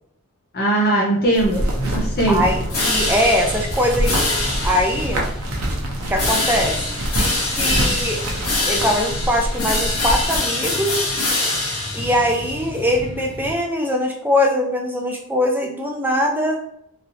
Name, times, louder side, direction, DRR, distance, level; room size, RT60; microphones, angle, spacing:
voice 1, 0.5-2.4 7.6-7.9, right 1 dB, 45° left, -3 dB, 0.7 m, -20 dB
sound 1, 1.2-13.5, left 2 dB, 70° left, 1.0 m, -25 dB
sound 2, 1.4-10.4, equal, 75° right, 0.7 m, -26 dB
voice 2, 2.3-4.3 4.6-5.2 6.1-6.8 7.1-8.2 8.7-11.1 11.9-16.6, equal, 10° right, 1 dB, 0.4 m, -21 dB
3.0 x 2.7 x 2.7 m, 0.76 s
head